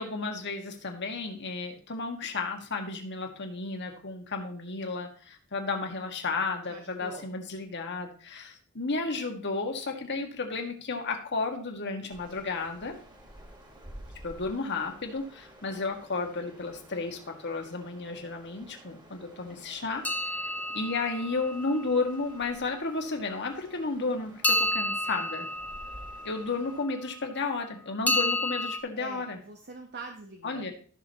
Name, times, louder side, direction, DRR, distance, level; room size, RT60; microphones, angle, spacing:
voice 1, 0.0-13.0 14.2-20.1 20.7-25.5 26.2-29.4 30.4-30.7, left 3 dB, 55° left, 3 dB, 1.7 m, -33 dB
voice 2, 6.7-7.3 29.0-30.7, right 3 dB, 50° right, 4 dB, 0.9 m, -44 dB
sound 1, 12.1-26.8, right 1 dB, 20° right, 2.1 m, -52 dB
sound 2, 20.0-22.1 24.4-26.8 28.1-28.8, left 2 dB, 10° left, 1.0 m, -30 dB
14.5 x 6.4 x 3.0 m, 0.43 s
head